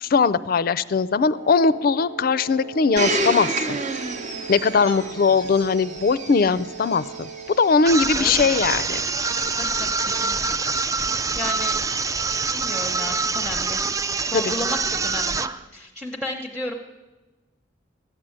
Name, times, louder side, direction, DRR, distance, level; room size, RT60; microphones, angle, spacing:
voice 1, 0.0-3.8 4.5-7.3 7.6-9.0 14.3-14.4, left 5 dB, 50° left, 16 dB, 0.4 m, -20 dB
Wind instrument woodwind instrument, 1.3-7.8, right 6 dB, 80° right, 1.6 m, -40 dB
Domestic sounds home sounds, 3.0-7.8 8.6-8.7, right 2 dB, 40° right, 0.8 m, -29 dB
voice 2, 4.8-5.2 8.2-8.5 9.6-10.6 10.9-11.8 12.5-13.9 14.2-16.8, left 1 dB, ahead, 1 dB, 0.8 m, -34 dB
sound 1, 7.8-15.6, right 4 dB, 15° right, 0.3 m, -25 dB
14.0 x 7.6 x 9.9 m, 1.2 s
head